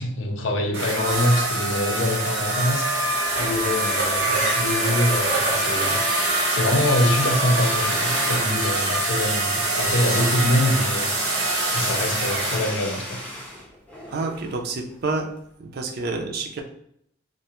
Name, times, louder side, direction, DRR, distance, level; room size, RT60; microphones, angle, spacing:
voice 1, 0.0-6.0 6.5-11.1 11.7-13.2, left 1 dB, 85° left, 3 dB, 0.5 m, -24 dB
sound 1, 0.7-12.7, right 2 dB, 80° right, 0.9 m, -24 dB
sound 2, 3.3-3.8 4.2-15.0, equal, 5° left, 0.5 m, -35 dB
voice 2, 14.1-15.3 15.6-16.6, right 3 dB, 55° right, 3 dB, 0.4 m, -28 dB
2.5 x 2.2 x 2.9 m, 0.70 s
head